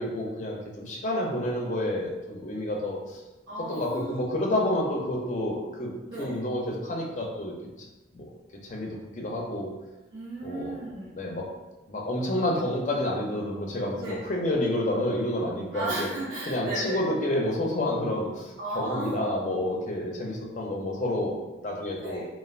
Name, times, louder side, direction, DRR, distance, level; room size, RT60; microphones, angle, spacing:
voice 1, 0.0-3.2 3.7-5.9 6.2-7.5 8.1-8.3 8.6-9.7 10.4-10.8 11.1-11.5 11.9-16.1 16.5-22.2, left 1 dB, 40° left, -1 dB, 0.5 m, -29 dB
voice 2, 3.5-4.3 6.1-6.4 10.1-11.1 14.0-14.2 15.7-17.0 18.6-19.3 22.0-22.3, right 2 dB, 75° right, -10 dB, 0.7 m, -35 dB
3.2 x 2.3 x 2.4 m, 1.1 s
head